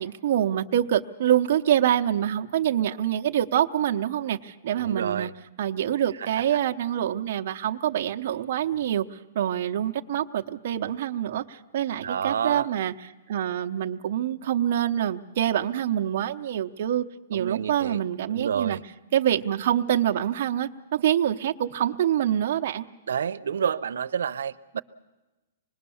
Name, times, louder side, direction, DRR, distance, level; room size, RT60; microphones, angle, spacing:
voice 1, 0.0-5.3 5.6-17.0 17.3-18.8 19.1-22.9, right 10 dB, 40° right, 4 dB, 0.8 m, -26 dB
voice 2, 4.8-5.3 12.0-12.7 17.3-18.0 18.3-18.8 23.1-24.8, right 7 dB, 90° right, 10 dB, 0.7 m, -29 dB
25.5 x 20.5 x 7.1 m, 1.1 s
hypercardioid pair, 180°, 0 cm